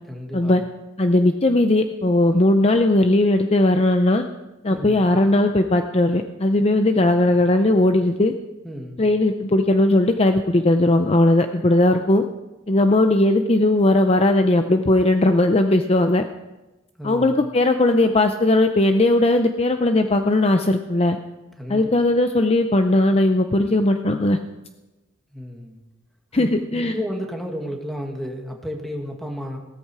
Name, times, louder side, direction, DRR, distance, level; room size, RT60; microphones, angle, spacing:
voice 1, 0.1-0.6 4.7-5.0 8.6-9.0 17.0-17.3 21.6-21.9 25.3-25.8 26.3-29.6, equal, ahead, 2 dB, 2.0 m, -32 dB
voice 2, 1.0-4.2 4.6-8.3 9.0-12.2 12.7-16.3 17.0-21.2 21.7-24.4 26.3-26.9, left 1 dB, 30° left, 6 dB, 0.6 m, -18 dB
17.0 x 14.0 x 4.8 m, 1.1 s
head